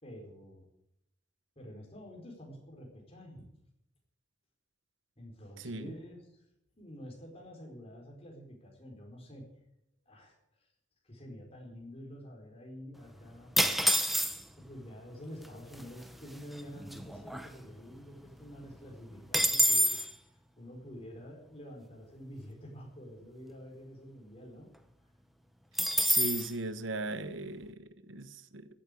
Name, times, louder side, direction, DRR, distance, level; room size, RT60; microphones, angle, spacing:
voice 1, 0.0-0.6 1.6-3.5 5.2-6.2 6.8-9.6 10.1-10.4 11.0-13.5 14.6-20.0 20.5-24.7, equal, 30° left, 0 dB, 4.8 m, -48 dB
voice 2, 5.6-5.9 26.0-28.7, right 2 dB, 85° right, 13 dB, 1.1 m, -38 dB
sound 1, 13.6-14.6 15.4-15.5 15.7-16.1 16.5-18.0 18.3-18.4 18.7-20.1 25.8-26.5, equal, ahead, 0.9 m, -28 dB
14.5 x 8.8 x 8.3 m, 0.83 s
head